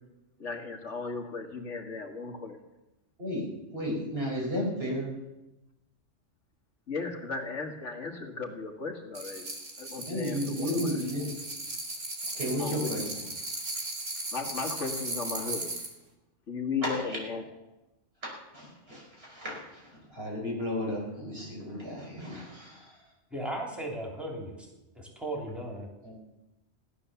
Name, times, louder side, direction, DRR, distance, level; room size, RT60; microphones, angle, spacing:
voice 1, 0.4-2.6 6.9-9.5 9.8-11.1 12.6-13.1 14.3-15.7 16.5-17.5, left 4 dB, 65° left, 3 dB, 2.0 m, -36 dB
voice 2, 3.2-5.1 10.1-11.3 12.3-13.0 16.8-17.2 18.5-23.0 26.0-26.1, equal, 50° right, -3 dB, 5.6 m, -33 dB
sound 1, 9.1-15.9, right 2 dB, 70° right, 2.8 m, -37 dB
voice 3, 23.3-24.7 24.9-25.9, right 1 dB, ahead, 0 dB, 3.2 m, -36 dB
16.0 x 11.5 x 6.9 m, 0.97 s
omnidirectional pair, 1.3 m